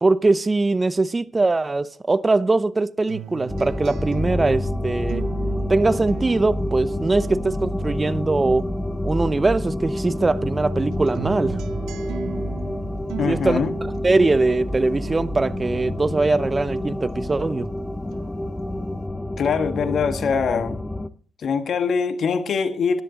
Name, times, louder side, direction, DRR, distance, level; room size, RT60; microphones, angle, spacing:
voice 1, 0.0-5.2 5.7-8.7 9.0-11.6 13.2-13.7 14.0-17.7, right 3 dB, 30° right, 0.7 m, -21 dB
sound 1, 3.1-9.7 10.1-17.7 18.1-19.1, right 12 dB, 80° right, 0.6 m, -40 dB
sound 2, 3.5-21.1, left 1 dB, 15° left, 0.9 m, -28 dB
voice 2, 13.2-13.7 19.4-20.8 21.4-23.0, left 5 dB, 60° left, 1.3 m, -23 dB
14.0 x 10.5 x 3.8 m
supercardioid pair, 55°, 0 cm